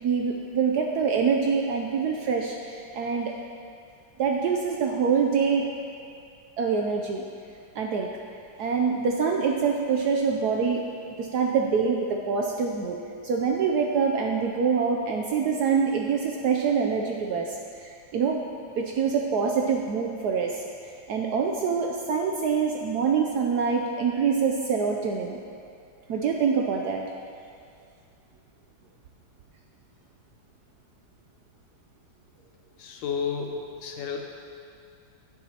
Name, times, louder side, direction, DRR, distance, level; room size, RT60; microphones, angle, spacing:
voice 1, 0.0-3.3 4.2-5.7 6.6-7.2 7.8-8.1 8.6-10.8 11.2-13.0 13.2-17.5 18.1-18.4 18.8-20.6 21.1-25.4 26.1-27.0, right 5 dB, 70° right, 1 dB, 0.9 m, -25 dB
voice 2, 32.8-34.3, left 6 dB, 75° left, 2 dB, 1.5 m, -31 dB
11.0 x 9.2 x 2.9 m, 2.4 s
omnidirectional pair, 2.2 m